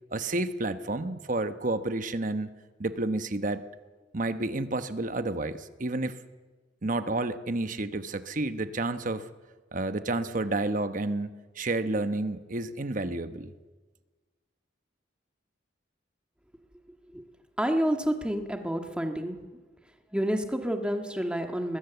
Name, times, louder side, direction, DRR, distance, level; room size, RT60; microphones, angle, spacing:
voice 1, 0.1-2.5 2.8-3.6 4.1-6.2 6.8-9.3 9.7-13.5, right 2 dB, 45° right, 10 dB, 1.0 m, -30 dB
voice 2, 17.6-19.4 20.1-21.8, equal, 5° right, 4 dB, 1.7 m, -29 dB
23.0 x 20.5 x 7.1 m, 1.3 s
head